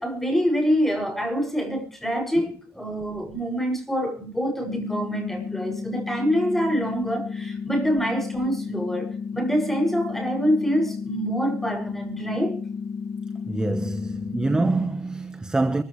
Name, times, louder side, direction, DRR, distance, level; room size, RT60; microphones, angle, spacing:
voice 1, 0.0-9.1 9.3-12.6, equal, 5° left, 6.3 m, -25 dB
sound 1, 4.7-14.7, left 5 dB, 65° left, 2.4 m, -32 dB
voice 2, 13.5-15.8, right 2 dB, 15° right, 1.1 m, -25 dB
24.0 x 15.0 x 3.2 m
cardioid pair, 155°, 5 cm